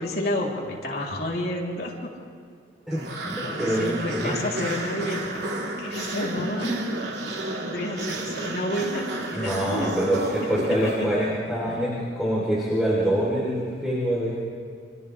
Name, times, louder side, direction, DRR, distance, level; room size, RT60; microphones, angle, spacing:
voice 1, 0.0-2.1 3.4-5.5 5.8-6.7 7.2-9.9 10.4-11.1, left 1 dB, 65° left, -2 dB, 3.5 m, -31 dB
voice 2, 2.9-4.3 6.4-6.7 9.3-14.4, equal, 5° right, -8 dB, 3.7 m, -25 dB
sound 1, 2.9-11.4, right 2 dB, 75° right, 2.4 m, -32 dB
29.5 x 26.0 x 3.4 m, 2.3 s
head